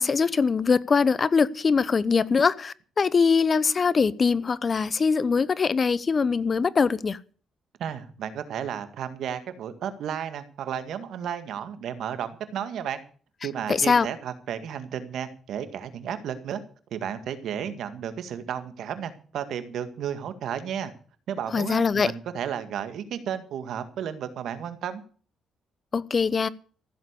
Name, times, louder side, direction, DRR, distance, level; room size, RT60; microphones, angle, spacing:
voice 1, 0.0-7.2 13.7-14.1 21.5-22.1 25.9-26.5, left 5 dB, 40° left, 0.8 m, -22 dB
voice 2, 7.8-13.0 13.4-16.6 16.9-20.9 21.3-25.0, right 9 dB, 75° right, 1.9 m, -33 dB
15.0 x 7.6 x 8.3 m
cardioid pair, 90°, 0 cm